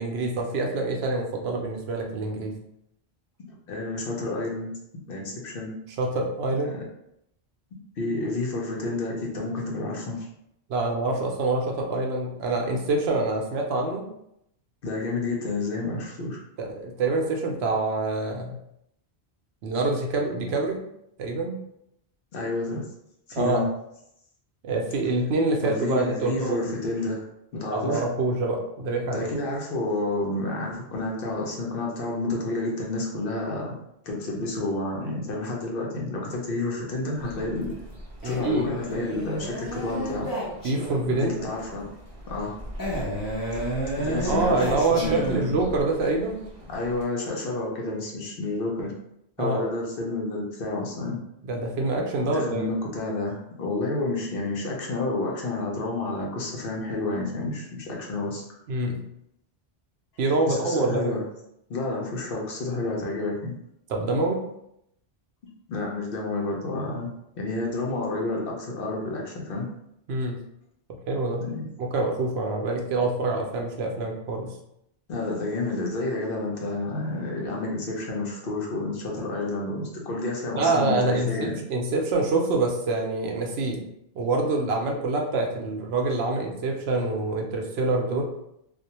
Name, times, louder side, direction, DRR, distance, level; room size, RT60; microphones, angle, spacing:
voice 1, 0.0-2.5 6.0-6.7 10.7-14.0 16.6-18.5 19.6-20.8 21.2-21.6 23.3-23.6 24.6-26.6 27.7-29.3 38.2-38.7 40.6-41.4 44.3-46.4 49.4-49.6 51.5-52.7 58.7-59.0 60.2-61.1 63.9-64.4 70.1-70.4 71.1-71.5 71.8-74.5 80.5-83.8 84.1-88.3, right 2 dB, 80° right, 1 dB, 0.8 m, -26 dB
voice 2, 3.4-4.7 5.1-5.7 8.0-10.3 14.8-16.4 22.3-22.8 23.3-23.6 25.6-27.2 27.5-28.0 29.1-33.7 34.0-37.7 38.2-40.3 41.2-41.9 42.3-42.5 43.5-43.6 44.0-45.4 46.7-48.9 49.4-51.2 52.2-58.4 60.5-61.2 61.7-63.5 65.7-67.1 67.4-69.7 71.4-71.6 75.1-81.6, left 2 dB, 65° left, -1 dB, 0.8 m, -30 dB
sound 1, 37.2-47.0, equal, 40° right, 0.6 m, -41 dB
Male speech man speaking, 38.2-41.2 42.8-45.8, right 1 dB, 25° left, 0.6 m, -32 dB
2.4 x 2.1 x 2.8 m, 0.78 s
omnidirectional pair, 1.1 m